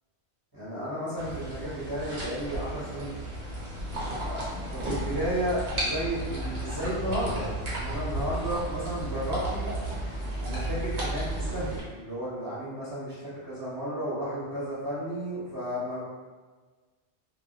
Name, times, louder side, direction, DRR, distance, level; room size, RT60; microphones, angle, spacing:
voice 1, 0.5-3.2 4.3-4.4 4.7-9.7 10.4-16.0, right 1 dB, 20° right, -11 dB, 0.9 m, -33 dB
sound 1, 1.2-11.8, right 1 dB, 70° right, 1.0 m, -33 dB
2.2 x 2.0 x 2.8 m, 1.4 s
omnidirectional pair, 1.1 m